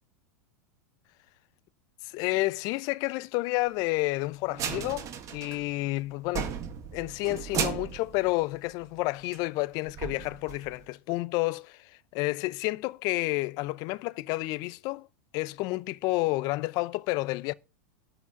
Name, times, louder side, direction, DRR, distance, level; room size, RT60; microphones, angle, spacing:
voice 1, 2.0-6.6 6.9-15.1 15.3-17.5, left 21 dB, 50° left, 0.7 m, -30 dB
sound 1, 4.5-5.9 6.2-9.0 9.3-9.4 9.9-10.8, right 9 dB, 40° right, 2.1 m, -35 dB
12.0 x 5.1 x 7.5 m
hypercardioid pair, 95°, 9 cm